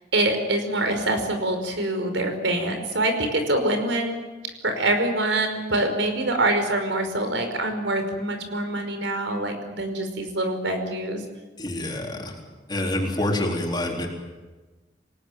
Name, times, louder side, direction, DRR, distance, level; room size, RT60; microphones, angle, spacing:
voice 1, 0.1-4.2 4.6-11.2, right 1 dB, 85° right, 6 dB, 5.3 m, -25 dB
voice 2, 11.6-12.4 12.7-14.1, left 1 dB, 25° left, 0 dB, 4.1 m, -27 dB
27.0 x 19.0 x 9.5 m, 1.3 s
head